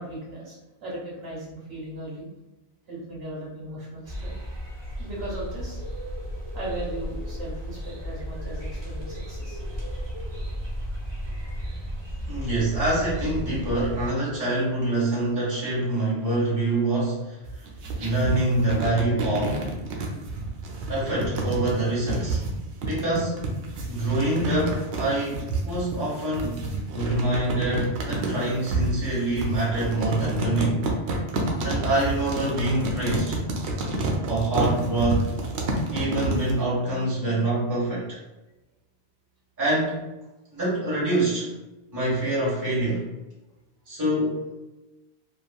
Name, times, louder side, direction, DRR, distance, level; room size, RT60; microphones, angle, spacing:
voice 1, 0.0-2.3 2.9-4.4 5.0-5.8 6.5-9.6, right 1 dB, 65° right, -6 dB, 1.2 m, -37 dB
sound 1, 4.0-14.1, equal, 35° right, 0.5 m, -34 dB
voice 2, 12.3-17.4 18.0-19.6 20.9-22.5 22.8-23.4 23.9-26.6 26.9-30.9 31.6-33.4 34.3-35.3 35.9-38.2 39.6-40.1 40.5-41.5 41.9-43.1 43.9-44.6, right 1 dB, 15° right, -8 dB, 1.1 m, -25 dB
sound 2, 17.4-36.6, right 2 dB, 90° right, 0.9 m, -29 dB
2.9 x 2.5 x 2.3 m, 1.0 s
omnidirectional pair, 1.1 m